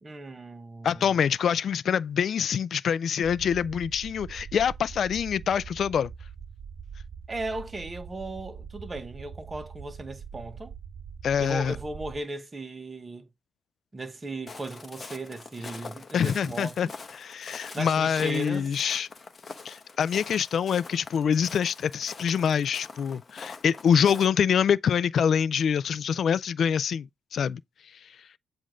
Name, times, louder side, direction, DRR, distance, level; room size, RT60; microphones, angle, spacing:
voice 1, 0.0-1.1 7.3-10.7 11.4-13.2 13.9-16.8 17.7-18.7, right 2 dB, 25° right, 1.0 m, -36 dB
voice 2, 0.8-6.1 11.2-11.8 16.1-19.1 19.6-27.6, left 7 dB, 55° left, 0.3 m, -25 dB
sound 1, 3.2-12.2, right 7 dB, 50° right, 0.4 m, -43 dB
Walk footsteps, 14.5-24.3, left 4 dB, 35° left, 0.8 m, -45 dB
7.5 x 2.5 x 4.9 m
cardioid pair, 90°, 0 cm